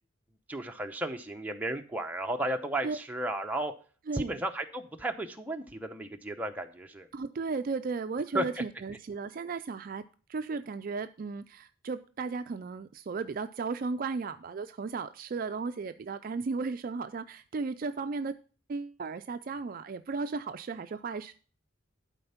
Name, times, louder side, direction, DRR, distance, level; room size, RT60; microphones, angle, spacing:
voice 1, 0.5-3.7 4.1-7.1 8.3-8.4, right 1 dB, 10° right, 3 dB, 0.8 m, -34 dB
voice 2, 4.1-4.4 7.1-10.0 10.3-18.3 18.7-21.3, right 4 dB, 45° right, 10 dB, 0.3 m, -35 dB
11.5 x 4.3 x 5.6 m, 0.39 s
head